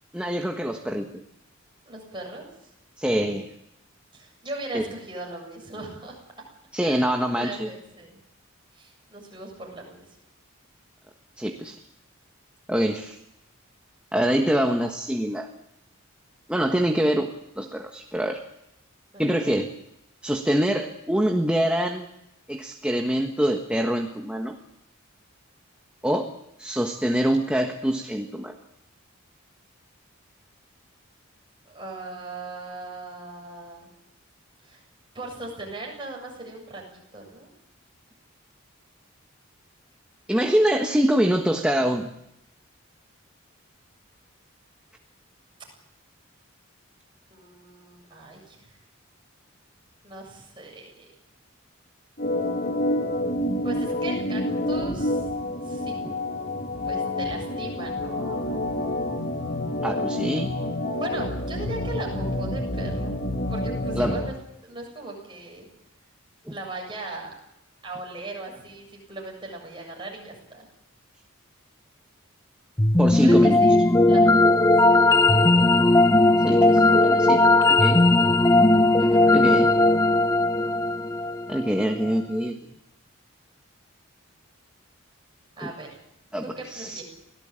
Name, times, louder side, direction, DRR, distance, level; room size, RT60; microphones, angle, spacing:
voice 1, 0.1-1.1 3.0-3.5 4.7-4.9 6.7-7.7 11.4-11.7 12.7-13.2 14.1-15.5 16.5-18.4 19.2-19.7 20.2-22.1 22.5-24.6 26.0-26.3 26.6-28.5 40.3-42.1 56.0-56.1 59.8-60.5 63.9-64.2 66.5-66.6 73.0-73.6 76.3-78.0 79.3-79.7 81.5-82.6 85.6-85.7 86.3-86.4 86.7-87.0, equal, 5° right, 3 dB, 1.3 m, -25 dB
voice 2, 1.8-2.5 4.1-6.2 6.8-8.2 8.7-10.0 12.8-12.9 19.1-19.2 31.7-33.9 34.7-34.8 35.1-37.5 47.3-48.8 50.0-51.1 53.6-55.2 55.6-56.0 56.8-58.4 61.0-63.2 63.5-64.3 64.6-65.7 66.5-67.3 67.8-70.7 73.2-73.8 74.1-75.1 78.9-79.9 80.1-80.2 85.6-86.0 86.6-87.0, right 2 dB, 20° right, 0 dB, 7.5 m, -38 dB
Organ, 52.2-64.3, left 1 dB, 45° left, 1.7 m, -28 dB
sound 1, 72.8-81.9, left 2 dB, 15° left, 0.9 m, -18 dB
24.5 x 17.5 x 8.8 m, 0.85 s
head